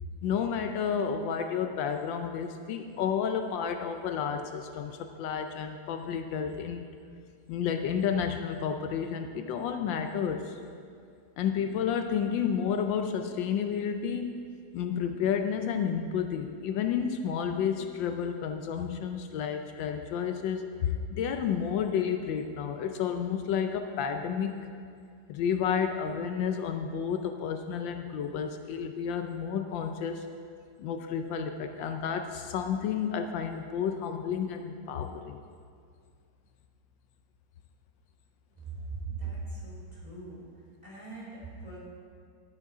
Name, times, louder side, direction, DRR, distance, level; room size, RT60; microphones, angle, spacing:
voice 1, 0.2-6.9 7.5-10.6 11.4-14.5 14.7-24.7 25.3-30.3 30.8-35.4, left 7 dB, 80° left, 6 dB, 1.3 m, -31 dB
voice 2, 38.6-40.4 40.8-41.8, right 4 dB, 20° right, -8 dB, 3.3 m, -39 dB
11.5 x 8.3 x 4.9 m, 2.3 s
omnidirectional pair, 2.1 m